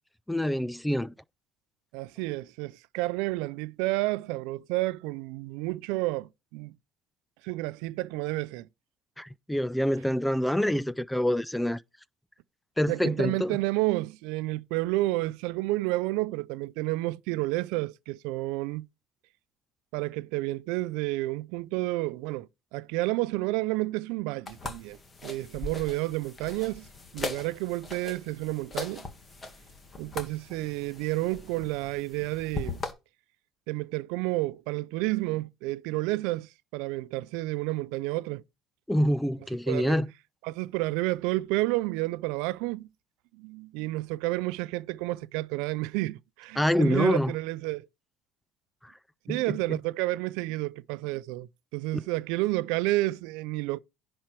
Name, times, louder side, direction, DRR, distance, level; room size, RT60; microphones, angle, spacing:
voice 1, 0.3-1.1 9.2-11.8 12.8-13.6 38.9-40.1 46.6-47.3 48.8-48.9 49.3-49.8 51.9-52.0, equal, 5° left, 0.3 m, -26 dB
voice 2, 1.9-6.7 7.4-8.7 12.9-18.9 19.9-26.9 27.1-29.1 30.0-32.8 33.7-38.4 39.7-40.0 40.4-42.9 43.4-47.9 49.3-53.8, right 20 dB, 80° right, 0.4 m, -30 dB
sound 1, 24.5-32.9, left 3 dB, 25° left, 1.7 m, -40 dB
10.5 x 4.4 x 4.7 m
cardioid pair, 125°, 0 cm